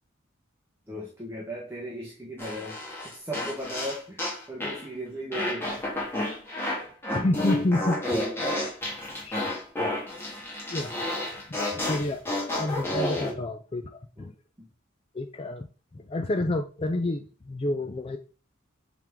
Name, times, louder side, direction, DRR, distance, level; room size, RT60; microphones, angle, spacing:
voice 1, 0.9-5.9 10.8-10.9 12.9-13.1 14.2-14.7, equal, 15° right, -3 dB, 1.2 m, -38 dB
sound 1, 2.4-4.8 5.3-13.3, left 1 dB, 10° left, 1.7 m, -31 dB
voice 2, 7.1-8.2 9.2-9.9 10.7-11.1 11.5-14.3 15.1-15.7 15.9-18.2, left 2 dB, 30° left, 6 dB, 0.4 m, -30 dB
7.3 x 3.6 x 3.7 m, 0.36 s
head